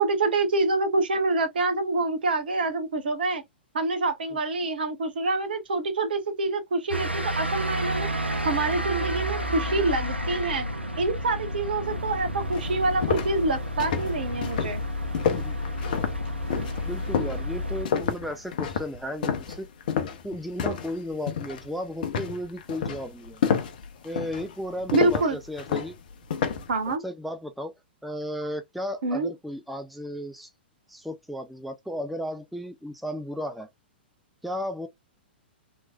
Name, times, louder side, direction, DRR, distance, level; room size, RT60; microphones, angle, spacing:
voice 1, 0.0-3.4 3.7-8.1 8.4-10.6 11.0-14.8 24.9-25.4 26.7-27.0 29.0-29.3, right 3 dB, 60° right, 1.1 m, -26 dB
sound 1, 6.9-17.9, equal, 90° right, 0.8 m, -30 dB
sound 2, 12.0-12.1 12.5-21.0 21.3-21.7 22.0-26.7, left 7 dB, 50° left, 0.7 m, -29 dB
voice 2, 16.8-19.7 20.2-23.4 24.0-26.0 27.0-27.7 28.0-30.5 30.9-33.7 34.4-34.9, equal, ahead, 0.4 m, -34 dB
3.2 x 3.1 x 2.4 m
figure-of-eight pair, 110°, 6 cm